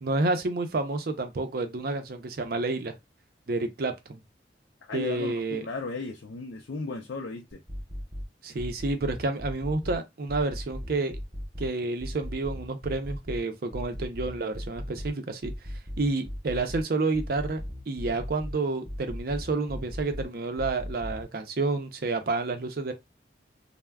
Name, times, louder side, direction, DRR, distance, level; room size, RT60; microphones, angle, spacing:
voice 1, 0.0-3.0 3.5-4.2 4.9-5.6 8.4-11.2 11.6-15.5 16.0-17.6 17.9-22.9, right 3 dB, 50° right, 0.5 m, -29 dB
voice 2, 4.8-7.6, left 3 dB, 75° left, 0.4 m, -35 dB
sound 1, 7.5-8.2 8.6-10.0 10.3-11.7 12.0-13.4 13.7-15.1 15.4-16.8 17.1-18.5 18.9-20.2 20.6-21.2, equal, 15° right, 0.7 m, -37 dB
2.3 x 2.0 x 3.4 m
head